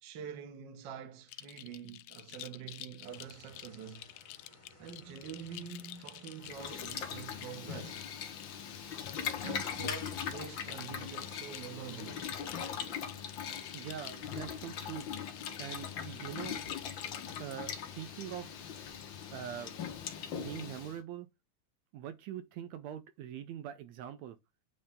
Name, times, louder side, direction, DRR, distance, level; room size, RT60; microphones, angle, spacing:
voice 1, 0.0-4.1 4.8-8.0 9.4-12.2, right 7 dB, 55° right, 1.4 m, -46 dB
sound 1, 1.3-17.4, left 15 dB, 80° left, 1.4 m, -51 dB
sound 2, 3.0-19.9, left 2 dB, 30° left, 0.5 m, -61 dB
Boiling, 6.4-21.0, left 8 dB, 55° left, 1.4 m, -40 dB
voice 2, 13.7-15.1 15.6-16.6 17.4-18.5 19.3-19.7 20.3-21.3 21.9-24.4, right 10 dB, 80° right, 1.8 m, -43 dB
8.7 x 3.2 x 3.6 m
omnidirectional pair, 3.4 m